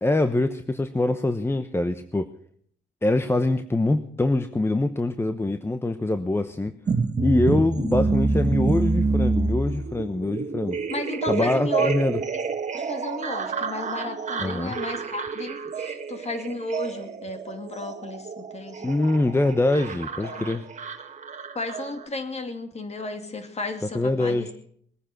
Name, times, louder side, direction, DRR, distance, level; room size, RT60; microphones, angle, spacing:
voice 1, 0.0-2.3 3.0-6.7 7.2-10.8 11.3-12.2 14.4-14.8 18.8-20.6 23.9-24.5, left 2 dB, 10° left, 9 dB, 0.9 m, -24 dB
sound 1, 6.9-22.1, right 4 dB, 35° right, 1.6 m, -28 dB
voice 2, 10.9-11.9 12.7-18.9 20.2-20.4 21.5-24.5, left 2 dB, 35° left, 6 dB, 2.6 m, -33 dB
20.5 x 9.9 x 6.3 m, 0.64 s
cardioid pair, 90°, 20 cm